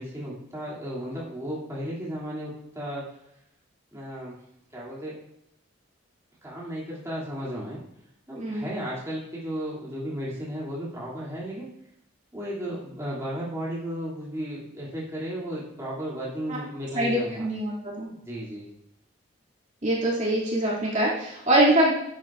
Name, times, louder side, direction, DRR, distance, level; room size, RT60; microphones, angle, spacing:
voice 1, 0.0-3.0 3.9-4.3 4.7-5.2 6.4-7.8 8.3-11.7 12.3-17.5 18.0-18.7, equal, 15° right, -7 dB, 2.5 m, -34 dB
voice 2, 8.3-8.7 16.5-16.6 16.9-18.1 19.8-21.9, right 1 dB, 35° right, -6 dB, 2.4 m, -23 dB
11.0 x 8.7 x 2.4 m, 0.80 s
head